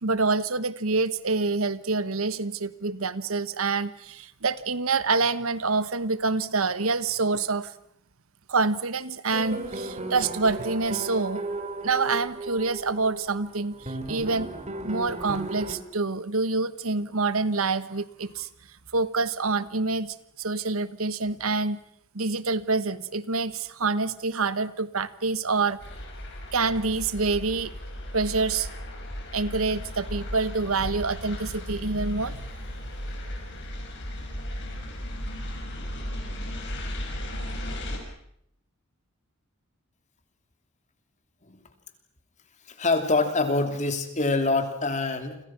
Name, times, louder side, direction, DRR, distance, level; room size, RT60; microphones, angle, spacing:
voice 1, 0.0-7.7 8.5-11.4 11.8-14.5 14.8-18.5 18.9-21.8 22.1-25.8 26.5-27.7 28.1-28.7 29.3-32.5, right 3 dB, 90° right, 14 dB, 1.3 m, -27 dB
sound 1, 9.3-15.8, right 2 dB, 35° right, 2.9 m, -35 dB
sound 2, 25.8-38.0, equal, 60° left, 6.2 m, -36 dB
voice 2, 42.8-45.4, left 3 dB, 35° left, 7 dB, 3.1 m, -25 dB
29.5 x 26.0 x 6.1 m, 0.74 s
head